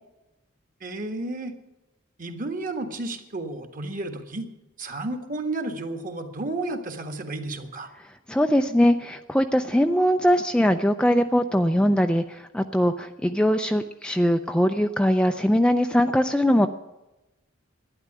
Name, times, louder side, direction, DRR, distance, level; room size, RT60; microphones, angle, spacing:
voice 1, 0.8-1.5 2.2-4.4 4.8-7.9, right 2 dB, 40° right, 6 dB, 1.5 m, -32 dB
voice 2, 8.3-16.7, equal, 5° left, 7 dB, 0.4 m, -21 dB
12.0 x 10.0 x 9.7 m, 1.0 s
head